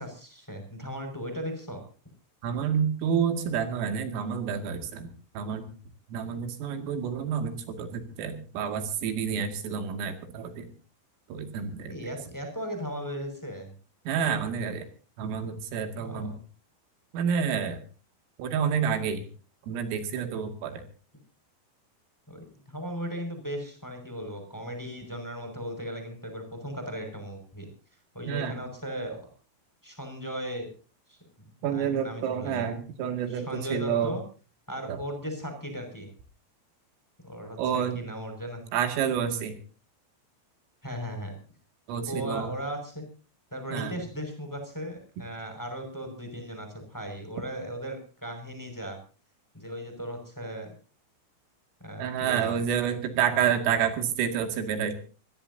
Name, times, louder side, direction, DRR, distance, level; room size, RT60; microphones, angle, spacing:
voice 1, 0.0-1.8 11.9-13.7 16.0-16.3 22.3-27.7 28.1-29.3 29.8-30.7 31.1-32.7 33.3-34.2 34.7-36.1 37.2-38.6 40.8-41.3 42.1-43.1 43.5-49.0 49.5-50.7 51.8-52.6, equal, 5° left, 5 dB, 5.3 m, -37 dB
voice 2, 2.4-5.7 6.1-10.7 11.3-11.9 14.1-14.8 15.2-16.4 17.1-17.8 18.4-19.2 19.7-20.8 28.3-28.6 31.6-34.1 34.9-35.0 37.6-38.0 38.7-39.6 41.9-42.5 43.7-43.9 52.0-54.9, right 7 dB, 85° right, 7 dB, 4.9 m, -29 dB
26.0 x 18.0 x 2.7 m, 0.37 s
omnidirectional pair, 5.7 m